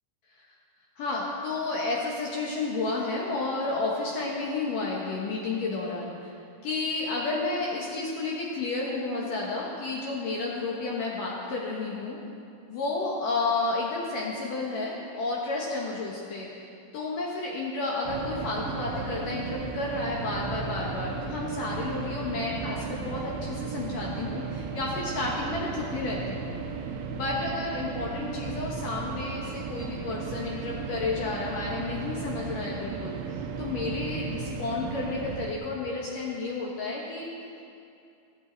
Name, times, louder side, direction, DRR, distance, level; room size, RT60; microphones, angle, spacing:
voice 1, 1.0-6.3 6.6-12.2 12.7-26.5 27.1-33.2 33.6-37.6, left 3 dB, 65° left, -3 dB, 2.2 m, -31 dB
sound 1, 18.1-35.5, right 5 dB, 90° right, 3.2 m, -35 dB
17.0 x 13.5 x 3.9 m, 2.6 s
omnidirectional pair, 5.2 m